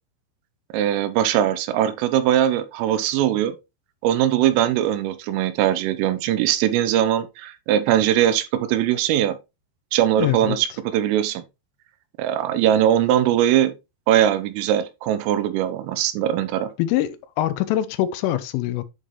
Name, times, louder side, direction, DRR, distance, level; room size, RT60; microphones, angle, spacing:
voice 1, 0.7-3.6 4.0-9.4 9.9-11.4 12.2-13.7 14.1-16.7, right 11 dB, 80° right, 3.2 m, -21 dB
voice 2, 10.2-10.6 16.8-18.8, left 13 dB, 85° left, 3.0 m, -24 dB
10.5 x 4.1 x 3.1 m
omnidirectional pair, 5.9 m